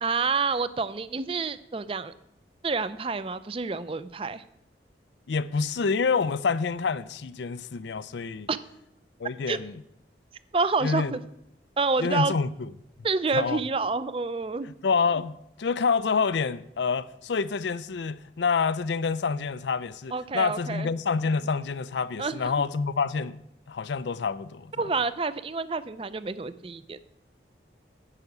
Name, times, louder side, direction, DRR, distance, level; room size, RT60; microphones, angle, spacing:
voice 1, 0.0-2.1 2.6-4.4 8.5-8.6 9.5-9.6 10.5-11.2 11.8-12.3 13.0-14.7 20.1-20.9 22.2-22.5 24.8-27.0, right 4 dB, 30° right, 0.4 m, -28 dB
voice 2, 5.3-8.5 9.2-9.7 10.8-11.1 12.0-12.5 13.3-13.6 14.8-15.3 15.6-23.4 23.7-24.7, left 5 dB, 80° left, 0.5 m, -27 dB
9.9 x 5.9 x 8.0 m
head